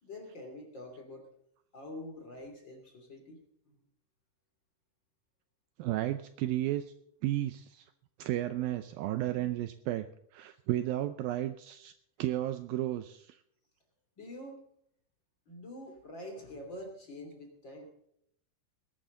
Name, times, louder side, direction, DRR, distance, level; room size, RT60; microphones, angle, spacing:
voice 1, 0.0-1.3 1.7-3.4 3.7-3.8 14.2-14.6 15.5-17.9, left 1 dB, 30° left, 2 dB, 3.1 m, -46 dB
voice 2, 5.8-6.8 7.2-7.9 8.2-10.1 10.3-11.9 12.2-13.4, right 14 dB, 80° right, 10 dB, 2.2 m, -33 dB
20.0 x 12.0 x 3.9 m, 0.71 s
omnidirectional pair, 4.6 m